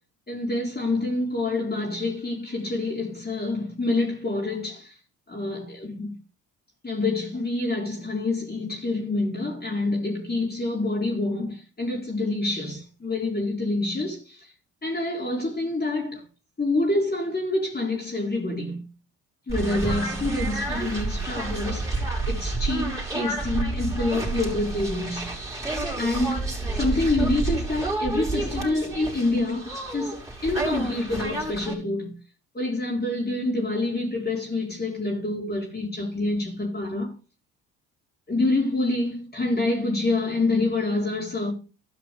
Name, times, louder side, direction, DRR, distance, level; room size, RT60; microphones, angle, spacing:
voice 1, 0.3-5.0 5.3-6.1 6.8-14.5 14.8-16.2 16.6-18.8 19.5-21.9 22.3-25.3 26.0-32.1 32.5-37.1 38.3-41.5, left 2 dB, 25° left, 4.3 m, -27 dB
sound 1, 19.5-31.7, right 2 dB, 10° right, 5.5 m, -29 dB
13.0 x 5.7 x 5.3 m
hypercardioid pair, 60°, 39 cm